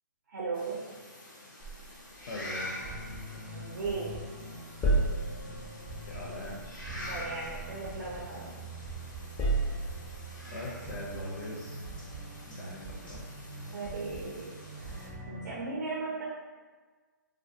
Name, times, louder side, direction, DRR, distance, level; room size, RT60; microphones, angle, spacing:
voice 1, 0.3-0.9 3.5-4.2 6.1-6.2 6.9-8.5 13.7-14.5 14.9-16.2, right 3 dB, 65° right, -4 dB, 0.5 m, -37 dB
sound 1, 0.5-15.1, left 1 dB, 90° left, 0.9 m, -47 dB
sound 2, 1.6-4.2 4.4-8.7 9.1-10.3, right 2 dB, 15° left, 0.4 m, -34 dB
voice 2, 2.3-2.8 5.4-5.7 6.0-6.6 10.5-11.8 12.5-13.2, left 2 dB, 60° left, -4 dB, 0.6 m, -41 dB
sound 3, 2.3-15.5, right 2 dB, 30° right, 0.7 m, -44 dB
2.3 x 2.2 x 2.7 m, 1.4 s
hypercardioid pair, 145°, 10 cm